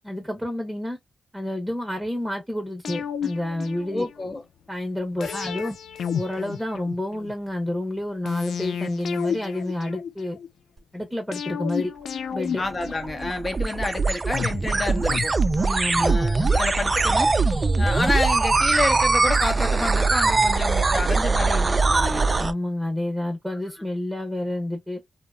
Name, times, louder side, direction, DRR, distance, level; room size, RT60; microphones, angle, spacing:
voice 1, 0.0-1.0 1.3-4.0 4.7-5.8 6.1-10.4 10.9-11.9 12.3-12.6 15.6-16.5 22.4-25.0, left 1 dB, 5° right, 0.9 m, -29 dB
sound 1, 2.8-4.4 5.2-7.3 8.3-10.5 11.3-13.7 14.3-16.0 16.3-16.4, left 7 dB, 85° left, 0.3 m, -32 dB
voice 2, 3.9-4.4 5.2-5.5 12.6-15.3 16.0-17.3 17.8-22.3, left 2 dB, 30° left, 0.9 m, -29 dB
sound 2, 12.6-22.5, right 3 dB, 35° right, 0.3 m, -22 dB
2.8 x 2.2 x 2.3 m
cardioid pair, 70°, 0 cm